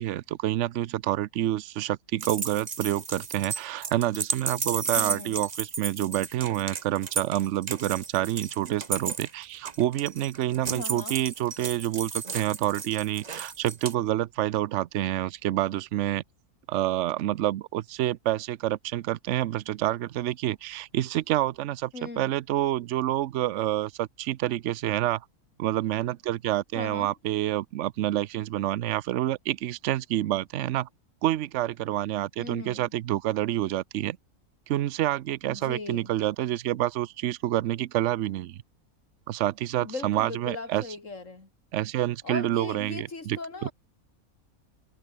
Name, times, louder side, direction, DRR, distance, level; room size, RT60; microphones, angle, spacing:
voice 1, 0.0-16.2 16.7-25.2 25.6-30.9 31.2-34.2 34.7-38.6 39.3-40.8 41.7-43.7, right 14 dB, 65° right, 0.9 m, -28 dB
sound 1, 2.2-13.9, right 5 dB, 30° right, 1.1 m, -34 dB
voice 2, 5.0-5.4 10.7-11.2 21.9-22.3 26.8-27.1 32.4-32.9 35.5-36.1 39.8-41.5 42.2-43.7, left 3 dB, 55° left, 3.8 m, -38 dB
omnidirectional pair, 1.6 m